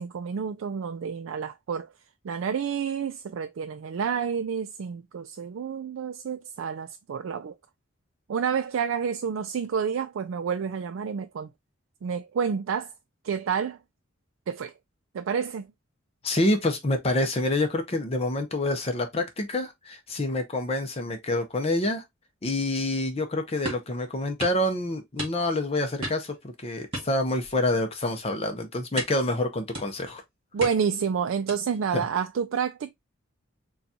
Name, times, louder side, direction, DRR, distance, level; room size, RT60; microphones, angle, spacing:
voice 1, 0.0-1.9 2.2-7.6 8.3-11.5 12.0-12.9 13.2-13.8 14.5-14.7 15.1-15.7 30.5-32.9, right 6 dB, 70° right, 0.3 m, -29 dB
voice 2, 16.2-22.0 22.4-30.2 31.9-32.0, left 1 dB, 30° left, 0.6 m, -27 dB
sound 1, 23.6-23.9 24.4-24.6 25.2-25.6 26.0-26.4 26.9-27.7 28.0-28.3 29.0-29.3 29.7-30.1 30.6-31.0 31.5-31.8, right 1 dB, 25° right, 1.6 m, -36 dB
6.8 x 2.3 x 2.7 m
head